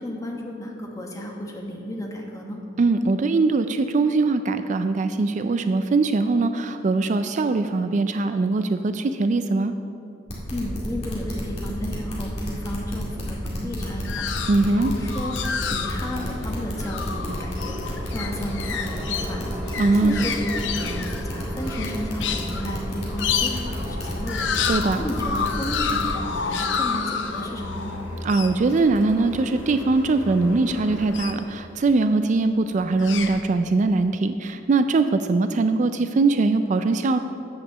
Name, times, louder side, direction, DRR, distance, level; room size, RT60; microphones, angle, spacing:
voice 1, 0.0-2.6 10.5-27.9, equal, 20° left, 0 dB, 1.3 m, -33 dB
voice 2, 2.8-9.7 14.5-14.9 19.8-20.3 24.7-25.0 28.2-37.2, right 3 dB, 40° right, 9 dB, 0.3 m, -21 dB
sound 1, 10.3-26.0, equal, 35° left, 2.2 m, -31 dB
sound 2, 13.7-31.8 32.7-33.4, left 6 dB, 90° left, 0.6 m, -31 dB
sound 3, 16.0-31.0, equal, 15° right, 2.6 m, -39 dB
8.8 x 7.3 x 6.8 m, 2.8 s
head